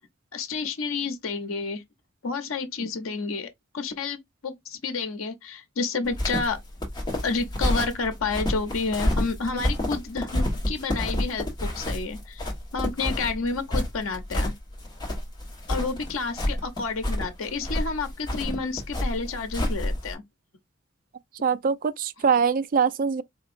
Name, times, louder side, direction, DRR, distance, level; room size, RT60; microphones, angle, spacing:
voice 1, 0.3-1.8 2.2-6.6 7.2-12.4 12.7-14.5 15.7-20.2, left 4 dB, 90° left, 0.7 m, -30 dB
sound 1, 6.1-20.1, left 1 dB, 20° left, 1.3 m, -29 dB
voice 2, 21.4-23.2, right 6 dB, 45° right, 0.3 m, -23 dB
4.3 x 2.8 x 2.5 m
head